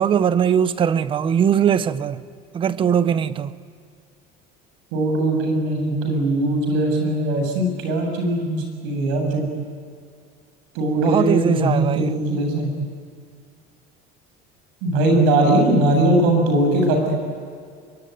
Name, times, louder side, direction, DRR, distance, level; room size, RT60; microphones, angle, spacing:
voice 1, 0.0-2.2 2.5-3.6 11.0-12.1, right 8 dB, 25° right, 0.7 m, -20 dB
voice 2, 4.9-9.5 10.7-12.7 14.8-17.1, right 1 dB, 80° right, 7.9 m, -20 dB
23.5 x 23.0 x 9.5 m
cardioid pair, 170°, 20 cm